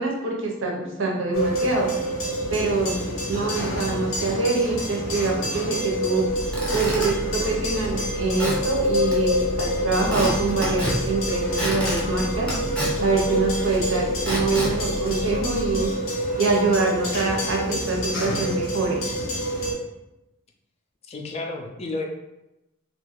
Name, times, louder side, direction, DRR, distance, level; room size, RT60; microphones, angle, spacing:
voice 1, 0.0-1.9 2.5-6.3 6.7-12.5 13.0-15.9 16.4-19.0, right 3 dB, 70° right, 0 dB, 0.6 m, -25 dB
sound 1, 1.3-19.7, equal, 80° left, 0.8 m, -27 dB
Squeak / Wood, 6.2-15.9, equal, 5° left, 0.7 m, -31 dB
voice 2, 21.0-22.0, left 3 dB, 30° left, 2 dB, 0.3 m, -31 dB
2.6 x 2.3 x 3.0 m, 0.92 s
head